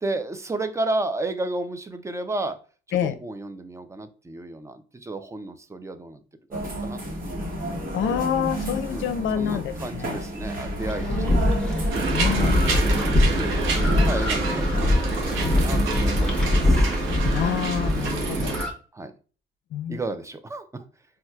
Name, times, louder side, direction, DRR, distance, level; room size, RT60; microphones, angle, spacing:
voice 1, 0.0-2.6 2.9-6.2 6.5-7.5 8.8-11.6 12.3-12.6 13.1-16.9 18.9-19.1 19.9-20.8, right 2 dB, 15° right, 9 dB, 0.4 m, -33 dB
sound 1, 6.5-17.7, equal, 45° right, 1.2 m, -30 dB
voice 2, 7.9-10.2 12.1-12.8 17.3-18.6 19.7-20.0, left 9 dB, 70° left, 11 dB, 0.5 m, -27 dB
sound 2, 10.8-18.7, left 1 dB, 5° left, 1.0 m, -24 dB
sound 3, 11.9-18.6, right 4 dB, 90° right, 0.8 m, -28 dB
4.1 x 2.3 x 2.3 m, 0.37 s
cardioid pair, 90°, 20 cm